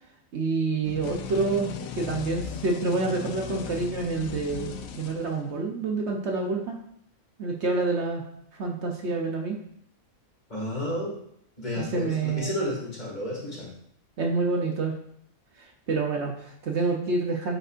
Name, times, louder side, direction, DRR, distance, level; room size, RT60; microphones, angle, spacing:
voice 1, 0.3-1.7 2.0-6.8 7.4-8.2 8.5-9.6 11.8-12.5 14.2-15.0 15.6-17.6, right 3 dB, 60° right, 1 dB, 1.0 m, -28 dB
sound 1, 0.8-5.7, left 8 dB, 80° left, 1.0 m, -37 dB
voice 2, 10.5-11.2 11.6-13.7, left 1 dB, 35° left, -3 dB, 2.1 m, -31 dB
8.7 x 5.3 x 2.5 m, 0.70 s
omnidirectional pair, 1.4 m